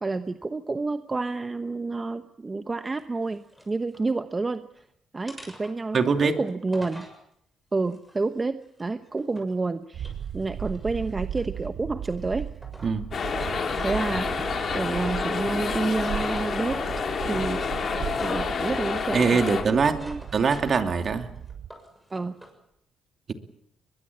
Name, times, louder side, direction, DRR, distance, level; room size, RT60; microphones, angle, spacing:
voice 1, 0.0-3.4 3.7-4.8 5.1-7.1 7.7-12.5 13.8-16.8 17.2-19.4 19.7-20.2 22.1-22.4, right 3 dB, 25° right, 10 dB, 1.0 m, -29 dB
sound 1, 2.9-4.1 4.5-4.9 5.3-7.2 7.8-9.6 9.9-11.8 12.2-13.0 13.3-14.7 16.1-16.5 17.2-17.4 17.7-18.5 18.9-20.9 21.2-22.6, equal, 5° right, 7.1 m, -49 dB
voice 2, 5.9-6.3 12.8-13.0 19.1-20.0 20.3-21.3, right 5 dB, 45° right, 7 dB, 2.8 m, -22 dB
sound 2, 9.9-21.7, right 9 dB, 65° right, 0.9 m, -37 dB
sound 3, 13.1-19.6, left 5 dB, 50° left, 4.4 m, -29 dB
22.0 x 22.0 x 8.7 m, 0.73 s
cardioid pair, 90°, 0 cm